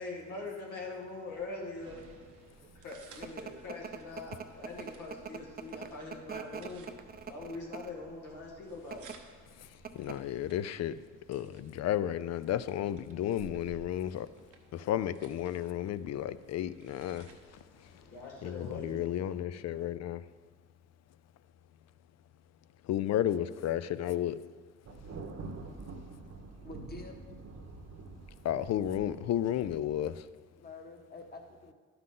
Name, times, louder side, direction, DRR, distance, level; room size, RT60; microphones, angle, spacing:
voice 1, 0.0-2.1 2.7-6.9 7.3-9.2 17.7-19.0, left 3 dB, 90° left, -2 dB, 2.0 m, -43 dB
sound 1, 1.3-19.1, right 5 dB, 80° right, 1.2 m, -58 dB
sound 2, 2.6-8.0 8.8-9.2 9.5-9.6 9.8-10.3, right 6 dB, 30° right, 0.6 m, -43 dB
voice 2, 9.5-11.0 11.3-14.3 14.7-18.0 18.4-20.2 22.8-24.4 28.4-30.3, left 11 dB, 60° left, 15 dB, 0.4 m, -33 dB
Thunder, 24.9-30.2, right 3 dB, 55° right, 1.1 m, -46 dB
voice 3, 26.2-27.2 30.6-31.7, left 3 dB, 30° left, 3 dB, 1.2 m, -48 dB
11.5 x 5.8 x 3.8 m, 1.5 s
cardioid pair, 90°, 30 cm